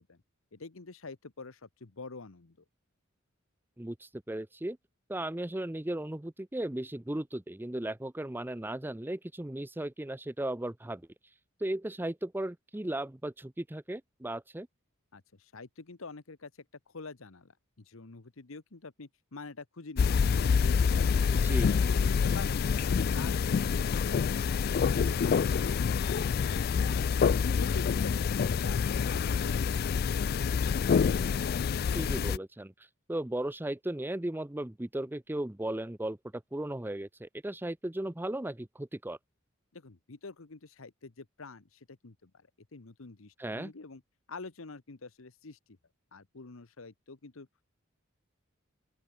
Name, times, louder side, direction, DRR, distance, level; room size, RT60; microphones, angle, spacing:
voice 1, 0.5-2.6 15.1-20.4 20.7-22.6 22.9-26.2 26.5-27.0 27.6-30.7 39.7-44.0 44.3-45.8 46.1-47.5, left 3 dB, 80° left, 1.1 m, -47 dB
voice 2, 3.8-4.8 5.1-11.1 11.6-14.7 21.3-21.7 31.9-32.7 33.1-39.2 43.4-43.7, right 1 dB, 10° right, 0.6 m, -36 dB
sound 1, 20.0-32.4, left 6 dB, 50° left, 0.3 m, -27 dB
open air
head